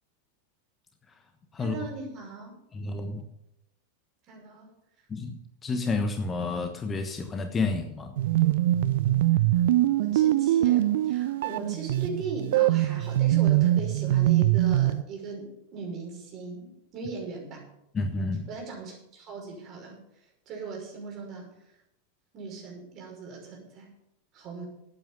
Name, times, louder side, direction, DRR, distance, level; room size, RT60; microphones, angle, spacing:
voice 1, 1.6-2.5 4.3-4.7 10.0-17.7 18.5-21.7 22.3-23.9 24.3-24.6, right 4 dB, 35° right, 0 dB, 5.9 m, -39 dB
voice 2, 2.7-3.2 5.1-8.1 17.9-18.5, left 3 dB, 20° left, 6 dB, 1.3 m, -30 dB
sound 1, 8.2-15.0, right 14 dB, 55° right, 0.5 m, -23 dB
13.0 x 9.1 x 7.2 m, 0.81 s
figure-of-eight pair, 90°, 0 cm